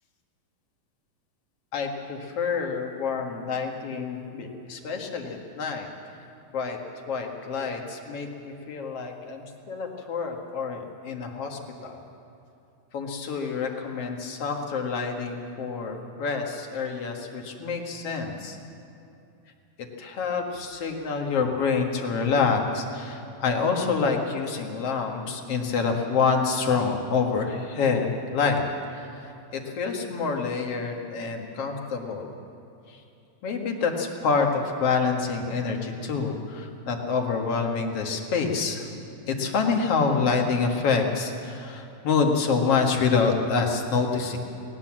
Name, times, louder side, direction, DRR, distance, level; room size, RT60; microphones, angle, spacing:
voice 1, 1.7-5.9 6.5-6.8 7.1-12.0 12.9-18.6 19.8-28.6 29.5-32.3 33.4-38.9 39.3-44.4, left 5 dB, 50° left, 2 dB, 2.3 m, -27 dB
19.0 x 18.5 x 7.5 m, 2.7 s
omnidirectional pair, 4.0 m